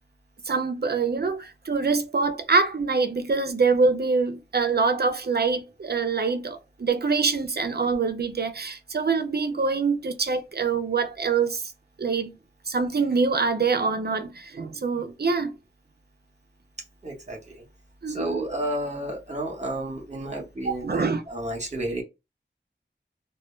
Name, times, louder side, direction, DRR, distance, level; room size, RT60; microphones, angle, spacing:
voice 1, 0.5-11.7 12.0-12.4 12.7-15.6 18.0-18.5 20.6-21.2, right 4 dB, 55° right, 0.4 m, -25 dB
voice 2, 17.0-17.4 18.1-22.0, right 1 dB, 35° right, 0.9 m, -31 dB
2.1 x 2.1 x 3.1 m
wide cardioid pair, 45°, 20 cm